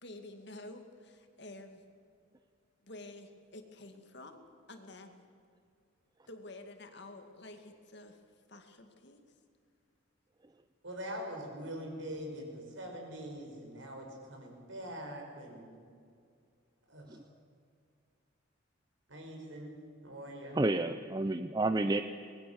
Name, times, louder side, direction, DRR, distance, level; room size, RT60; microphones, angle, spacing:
voice 1, 0.0-1.8 2.8-4.4 4.7-5.3 6.3-8.2 8.5-9.2, left 2 dB, 55° left, 6 dB, 2.3 m, -50 dB
voice 2, 10.8-15.7 16.9-17.2 19.1-20.6, equal, 70° right, 1 dB, 6.0 m, -43 dB
voice 3, 20.5-22.0, right 2 dB, 20° right, 9 dB, 0.5 m, -30 dB
24.5 x 21.0 x 7.2 m, 2.2 s
head